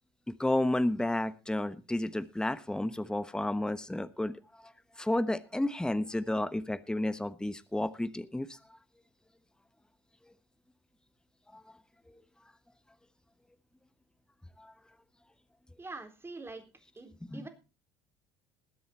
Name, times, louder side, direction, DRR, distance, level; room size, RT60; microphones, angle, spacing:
voice 1, 0.3-4.3 4.6-8.6 11.5-11.6 14.6-14.7 17.2-17.5, left 1 dB, 5° left, 13 dB, 1.1 m, -32 dB
voice 2, 15.8-16.6 17.0-17.5, right 3 dB, 20° right, 6 dB, 3.9 m, -44 dB
20.5 x 7.9 x 4.3 m, 0.31 s
hypercardioid pair, 65°, 12 cm